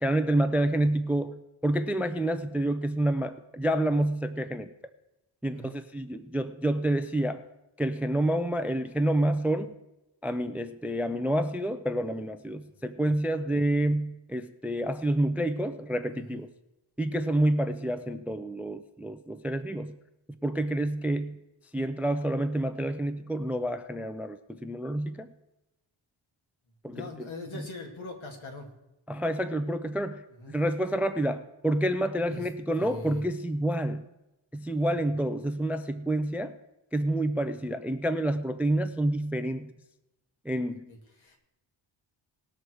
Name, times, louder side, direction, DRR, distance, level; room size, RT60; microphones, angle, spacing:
voice 1, 0.0-4.7 5.4-7.4 7.8-9.7 10.2-16.5 17.0-20.0 20.4-21.4 21.7-25.3 26.8-27.3 27.5-27.7 29.1-30.2 30.5-34.0 34.5-36.6 36.9-39.7 40.4-40.9, right 1 dB, 5° right, 11 dB, 0.4 m, -28 dB
voice 2, 26.9-28.7 30.4-30.6 32.3-32.4 32.8-33.2 40.9-41.4, left 2 dB, 70° left, 1 dB, 2.6 m, -41 dB
19.0 x 6.3 x 4.6 m, 0.94 s
cardioid pair, 115°, 49 cm